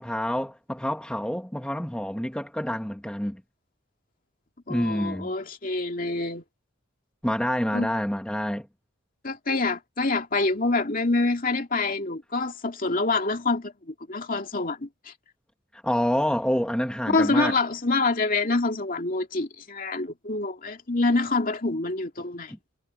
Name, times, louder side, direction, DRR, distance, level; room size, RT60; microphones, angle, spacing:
voice 1, 0.0-3.4 4.7-5.3 7.2-8.7 15.7-17.6 22.5-22.6, equal, 5° left, 1.2 m, -27 dB
voice 2, 4.7-6.4 7.7-7.9 9.2-15.1 17.1-22.5, left 3 dB, 40° left, 2.5 m, -26 dB
head